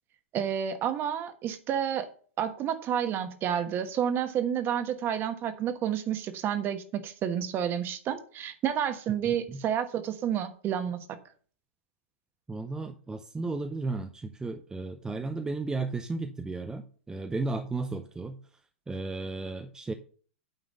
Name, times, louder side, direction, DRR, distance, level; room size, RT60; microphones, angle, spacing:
voice 1, 0.3-2.1 2.4-11.0, right 9 dB, 30° right, 1.2 m, -30 dB
voice 2, 9.2-9.7 12.5-18.4 18.9-19.9, right 3 dB, 10° right, 0.6 m, -34 dB
9.1 x 3.8 x 6.5 m
hypercardioid pair, 115°, 7 cm